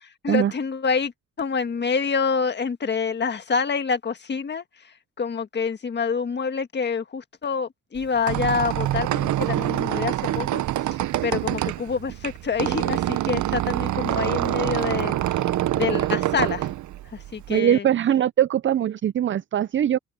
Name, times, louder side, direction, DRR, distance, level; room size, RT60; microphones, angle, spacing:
voice 1, 0.2-1.1 1.4-10.6 10.9-15.4 15.7-16.7 17.0-17.9, left 5 dB, 35° left, 1.7 m, -27 dB
Squeak, 8.0-17.6, right 13 dB, 75° right, 0.9 m, -25 dB
voice 2, 17.5-20.0, right 10 dB, 40° right, 0.5 m, -21 dB
cardioid pair, 90°, 30 cm